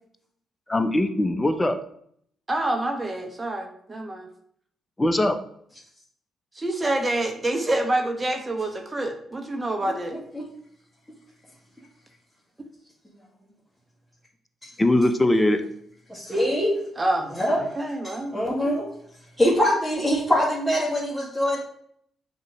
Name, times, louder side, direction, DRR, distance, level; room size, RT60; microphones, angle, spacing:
voice 1, 0.7-1.8 5.0-5.4 14.8-15.6, left 1 dB, 20° left, 0.8 m, -21 dB
voice 2, 2.5-4.3 6.5-10.2 17.0-18.7, right 1 dB, 25° right, 1.0 m, -27 dB
voice 3, 10.1-10.5 14.6-14.7 16.1-16.7 17.4-17.6 18.3-18.9 19.4-21.6, equal, ahead, 1.9 m, -23 dB
6.5 x 3.1 x 4.8 m
figure-of-eight pair, 40°, 0 cm